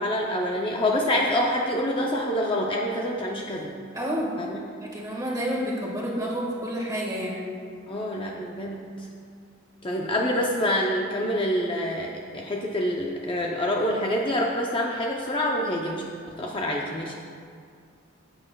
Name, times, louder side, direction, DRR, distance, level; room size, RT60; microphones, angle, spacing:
voice 1, 0.0-3.7 4.4-4.6 7.9-8.8 9.8-17.1, left 1 dB, 25° left, -1 dB, 0.6 m, -26 dB
voice 2, 3.9-4.3 4.8-7.4, equal, 15° right, -3 dB, 1.6 m, -29 dB
15.0 x 8.6 x 2.3 m, 2.2 s
head